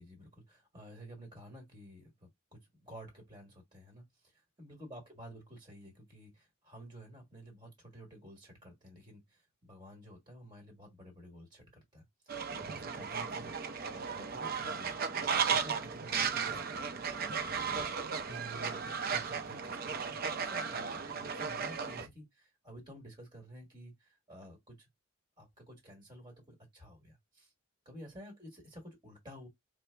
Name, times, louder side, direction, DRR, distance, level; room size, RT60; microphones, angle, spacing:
voice 1, 0.0-12.0 12.5-16.8 17.6-24.9 25.4-27.5 27.8-29.5, right 1 dB, 20° right, 1.3 m, -52 dB
Fowl, 12.3-22.1, right 6 dB, 45° right, 0.5 m, -35 dB
4.6 x 2.0 x 3.3 m
head